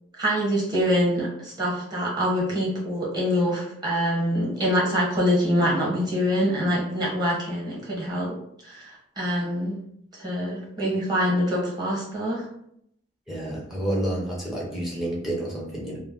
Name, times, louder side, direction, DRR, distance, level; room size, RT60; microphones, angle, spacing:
voice 1, 0.2-8.3 8.6-9.8 10.1-12.4, equal, 20° right, -5 dB, 1.0 m, -25 dB
voice 2, 13.3-16.0, right 1 dB, ahead, -5 dB, 0.6 m, -29 dB
2.2 x 2.1 x 3.6 m, 0.73 s
head